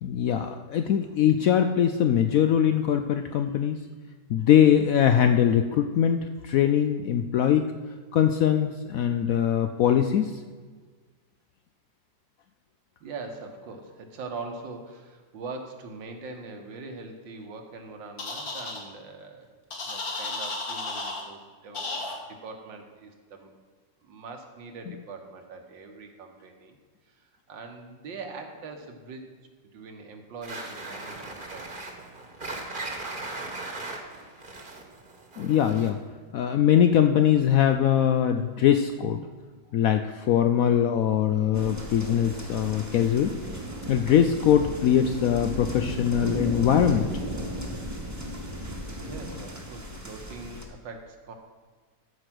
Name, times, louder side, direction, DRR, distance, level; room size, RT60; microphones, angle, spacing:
voice 1, 0.0-3.8 4.3-7.7 8.1-10.4 35.4-36.0 36.3-39.3 39.7-43.4 43.9-47.1, left 9 dB, 80° left, 7 dB, 0.7 m, -22 dB
voice 2, 13.0-19.5 19.9-23.5 24.0-26.8 27.0-29.3 29.7-31.7 39.6-39.7 49.0-51.3, right 3 dB, 85° right, 4 dB, 1.9 m, -42 dB
sound 1, 18.2-18.8 19.7-21.2 21.7-22.1, left 3 dB, 55° left, 2.1 m, -33 dB
sound 2, 30.4-36.1, right 2 dB, 30° right, 1.3 m, -38 dB
sound 3, 41.5-50.6, equal, 10° right, 1.0 m, -35 dB
13.5 x 5.0 x 6.0 m, 1.5 s
omnidirectional pair, 2.0 m